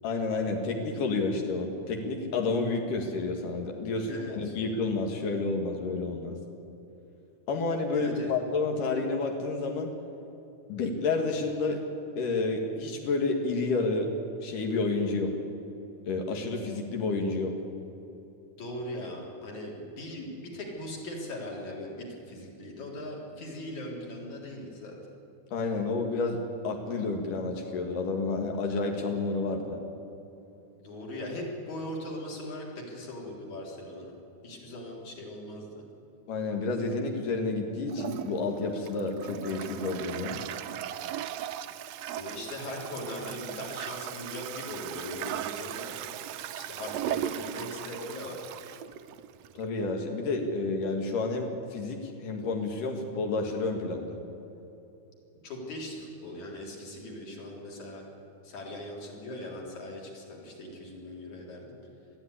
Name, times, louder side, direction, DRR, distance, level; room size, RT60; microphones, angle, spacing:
voice 1, 0.0-6.3 7.5-9.9 10.7-11.8 12.2-14.1 14.4-15.3 16.1-17.5 25.5-29.8 36.3-40.4 49.5-54.2, left 3 dB, 80° left, 3 dB, 3.3 m, -30 dB
voice 2, 4.0-4.6 7.9-8.3 18.5-25.0 30.8-34.1 34.4-35.8 42.1-46.1 46.5-48.5 55.4-58.0 58.4-61.8, left 1 dB, 65° left, -2 dB, 5.0 m, -40 dB
Toilet flush, 37.9-49.7, right 11 dB, 75° right, 1.6 m, -38 dB
20.5 x 14.0 x 10.0 m, 2.9 s
omnidirectional pair, 3.7 m